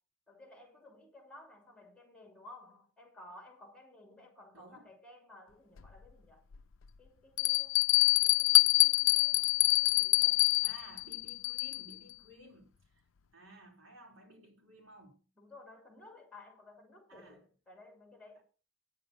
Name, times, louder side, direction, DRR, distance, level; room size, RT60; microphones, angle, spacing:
voice 1, 0.3-6.5 7.0-7.8 8.2-10.8 15.4-18.4, left 2 dB, 5° left, 2.8 m, -56 dB
voice 2, 4.5-4.9 10.6-12.7 13.3-15.2 17.1-17.4 18.3-18.4, right 1 dB, 90° right, 3.5 m, -55 dB
Bell, 5.8-5.9 6.5-6.6 7.4-11.9, left 18 dB, 70° left, 0.4 m, -26 dB
9.5 x 7.5 x 6.3 m
head